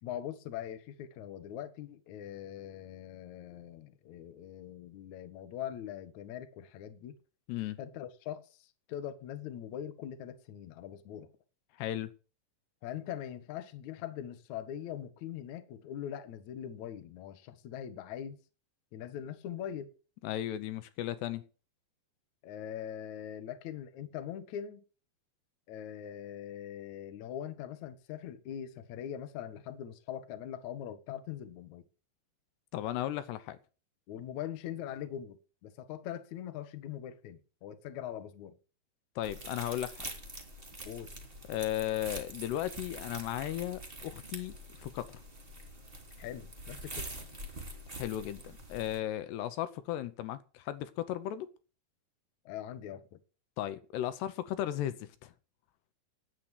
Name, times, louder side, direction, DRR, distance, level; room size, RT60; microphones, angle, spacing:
voice 1, 0.0-7.2 7.8-11.3 12.8-18.4 18.9-19.9 22.4-24.8 25.7-31.8 34.1-38.6 40.9-41.1 46.2-47.1 52.5-53.2, left 10 dB, 60° left, 2.0 m, -42 dB
voice 2, 7.5-7.8 11.8-12.1 20.2-21.4 32.7-33.6 39.2-40.1 41.5-45.2 47.9-51.5 53.6-55.3, left 12 dB, 75° left, 2.8 m, -36 dB
sound 1, 39.2-49.0, right 1 dB, 15° right, 2.1 m, -45 dB
10.0 x 9.1 x 8.2 m
omnidirectional pair, 5.0 m